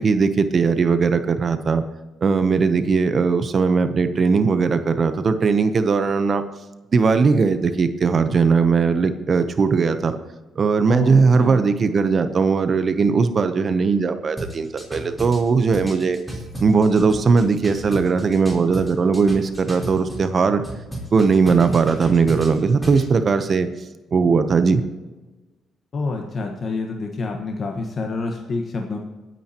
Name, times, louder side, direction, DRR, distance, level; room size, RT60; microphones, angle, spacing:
voice 1, 0.0-1.8 2.2-6.4 6.9-10.2 10.6-16.2 16.6-20.6 21.1-23.7 24.1-24.8, right 5 dB, 45° right, 10 dB, 0.8 m, -19 dB
voice 2, 10.9-11.6 25.9-29.0, left 3 dB, 50° left, 2 dB, 1.3 m, -27 dB
sound 1, 14.4-20.3 20.6-23.1, right 1 dB, ahead, 3.8 m, -34 dB
26.5 x 9.3 x 3.0 m, 1.2 s
cardioid pair, 90°, 0 cm